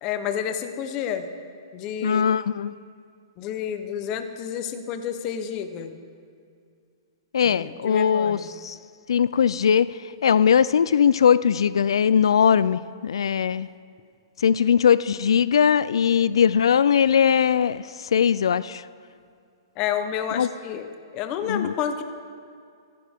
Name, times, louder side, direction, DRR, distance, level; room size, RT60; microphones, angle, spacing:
voice 1, 0.0-1.3 1.7-2.3 3.4-6.0 7.4-8.5 19.8-20.9 21.1-22.0, left 8 dB, 20° left, 8 dB, 0.7 m, -30 dB
voice 2, 2.0-2.7 7.3-8.8 9.1-9.9 10.2-13.7 14.4-17.8 18.1-18.8 20.4-20.5 21.5-21.7, left 7 dB, 90° left, 17 dB, 0.3 m, -20 dB
25.0 x 11.0 x 3.6 m, 2.3 s
hypercardioid pair, 175°, 3 cm